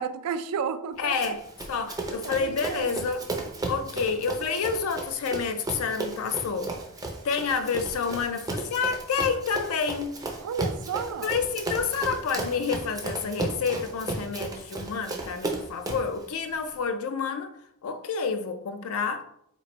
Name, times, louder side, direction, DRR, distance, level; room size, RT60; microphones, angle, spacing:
voice 1, 0.0-1.4 2.2-3.1 10.4-11.3, right 6 dB, 80° right, 0.3 m, -32 dB
voice 2, 1.0-1.4 1.7-3.2 3.7-6.7 7.2-10.2 11.2-17.5 17.8-19.2, left 5 dB, 65° left, 0.4 m, -29 dB
Run, 1.2-16.1, right 2 dB, 15° right, 0.4 m, -34 dB
3.0 x 2.5 x 4.0 m
head